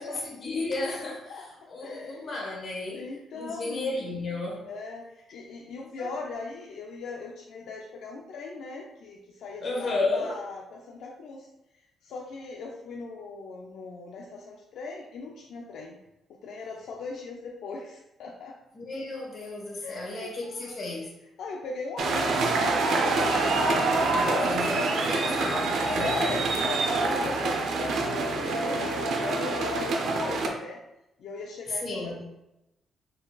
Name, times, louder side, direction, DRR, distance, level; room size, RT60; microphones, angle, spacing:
voice 1, 0.0-1.3 1.7-3.1 3.3-4.6 6.0-6.1 9.6-10.4 18.7-21.1 23.3-26.1 31.8-32.2, left 2 dB, 45° left, -2 dB, 1.3 m, -33 dB
voice 2, 1.8-2.3 2.9-4.2 4.6-11.5 12.0-16.0 16.4-18.6 19.8-21.0 21.4-23.6 24.1-24.5 26.0-30.8 31.2-32.2, left 4 dB, 80° left, -1 dB, 0.5 m, -39 dB
sound 1, 22.0-30.5, right 3 dB, 75° right, 0.5 m, -26 dB
4.0 x 3.8 x 2.3 m, 0.89 s
cardioid pair, 135°, 0 cm